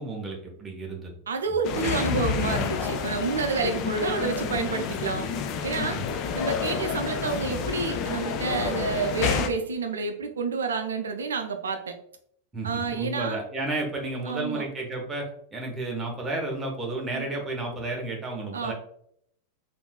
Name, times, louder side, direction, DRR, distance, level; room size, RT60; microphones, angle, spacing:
voice 1, 0.0-1.1 5.9-6.1 12.5-15.2 15.5-18.7, right 2 dB, 15° right, 0 dB, 0.8 m, -32 dB
voice 2, 1.3-5.3 5.6-11.9 12.6-13.4 14.2-14.6 17.1-17.3 18.5-18.7, right 4 dB, 70° right, 6 dB, 0.4 m, -29 dB
sound 1, 1.6-9.5, left 6 dB, 40° left, 0.3 m, -29 dB
3.6 x 2.6 x 2.2 m, 0.67 s
figure-of-eight pair, 90°, 0 cm